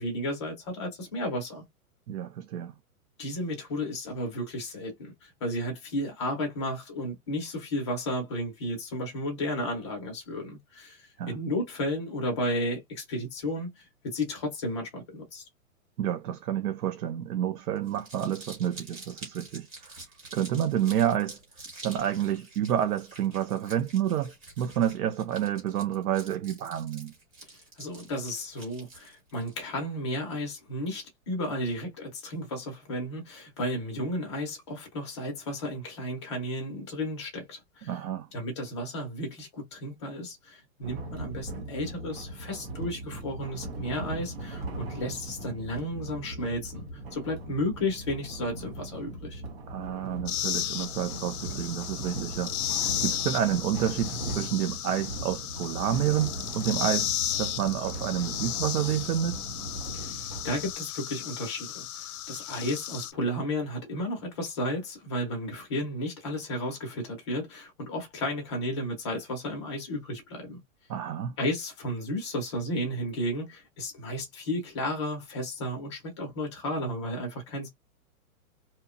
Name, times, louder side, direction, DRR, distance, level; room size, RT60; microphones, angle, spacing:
voice 1, 0.0-1.6 3.2-15.4 27.8-38.0 38.3-49.4 59.9-70.6 71.4-77.7, left 1 dB, 20° left, 0.5 m, -33 dB
voice 2, 2.1-2.7 11.2-11.3 16.0-20.0 20.3-21.4 21.8-27.1 37.9-38.3 49.7-57.1 57.4-59.4 70.9-71.4, right 10 dB, 85° right, 0.6 m, -29 dB
Crumpling crinkling, 17.8-29.5, right 2 dB, 25° right, 1.1 m, -47 dB
sound 1, 40.8-60.7, right 2 dB, 45° right, 0.7 m, -39 dB
sound 2, 50.3-63.1, left 11 dB, 85° left, 0.6 m, -34 dB
2.8 x 2.1 x 2.4 m
hypercardioid pair, 170°, 43 cm